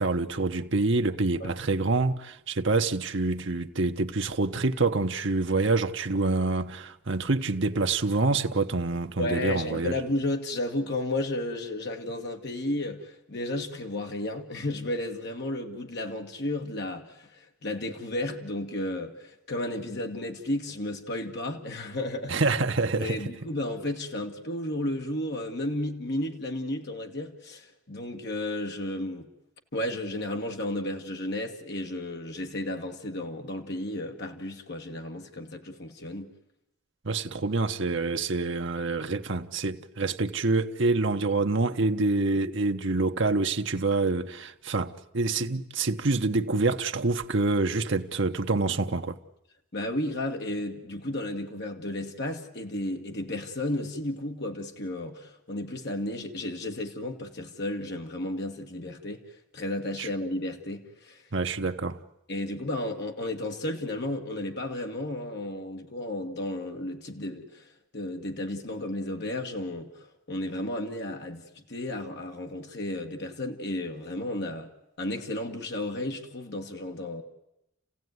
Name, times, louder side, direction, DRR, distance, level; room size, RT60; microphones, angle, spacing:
voice 1, 0.0-9.9 22.3-23.2 37.0-49.2 60.0-60.1 61.3-62.0, right 3 dB, 55° right, 1.0 m, -26 dB
voice 2, 9.2-22.3 22.9-29.3 29.7-36.3 49.7-59.2 59.5-61.2 62.3-69.9 70.3-74.7 75.0-77.2, left 1 dB, 50° left, 1.8 m, -33 dB
29.0 x 16.0 x 9.4 m
head